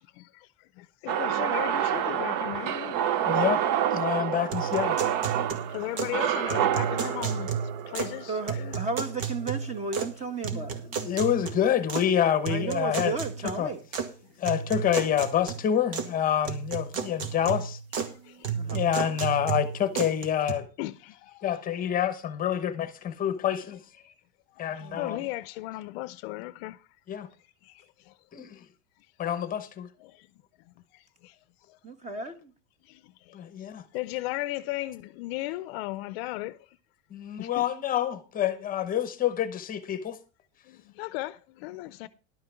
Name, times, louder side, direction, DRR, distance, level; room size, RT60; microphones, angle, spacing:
voice 1, 0.2-3.3 4.0-4.5 5.3-7.6 7.9-8.8 16.9-17.1 18.1-18.6 20.8-21.6 24.5-26.8 27.6-28.2 30.0-30.3 30.9-31.4 31.7-31.8 32.8-33.3 33.9-36.8 37.4-37.6 40.7-42.1, left 18 dB, 55° left, 0.6 m, -37 dB
sound 1, 1.1-9.2, right 10 dB, 45° right, 0.7 m, -28 dB
voice 2, 3.2-3.6 3.9-5.0 10.5-13.1 13.6-13.7 14.4-17.8 18.7-20.7 21.4-23.8 24.6-25.2 27.1-27.3 28.3-28.6 29.2-29.9 33.3-33.8 37.1-40.2, left 10 dB, 20° left, 1.0 m, -27 dB
sound 2, 4.5-6.2 6.5-8.2 8.5-10.2 10.4-12.1 12.5-14.1 14.5-16.1 16.5-18.1 18.4-20.5, right 7 dB, 80° right, 2.0 m, -33 dB
voice 3, 8.3-10.9 12.5-13.8 18.5-19.0 24.8-25.3 31.8-32.5, right 3 dB, 20° right, 1.3 m, -34 dB
11.5 x 5.7 x 6.9 m
supercardioid pair, 160°, 38 cm